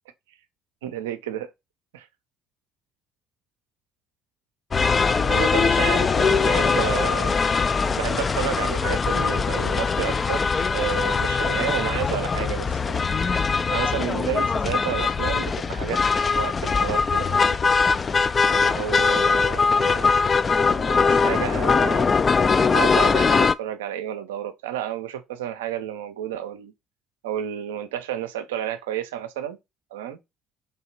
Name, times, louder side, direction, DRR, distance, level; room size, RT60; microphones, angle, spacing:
voice 1, 0.8-1.5 1.9-2.1 5.3-7.3 8.0-10.4 10.7-13.1 13.7-16.0 16.4-17.6 18.5-20.2 20.7-22.1 22.7-26.7 27.2-29.6 29.9-30.2, right 10 dB, 85° right, 0.5 m, -31 dB
sound 1, 4.7-23.5, left 5 dB, 35° left, 0.3 m, -21 dB
3.2 x 2.8 x 4.4 m
hypercardioid pair, 55°, 0 cm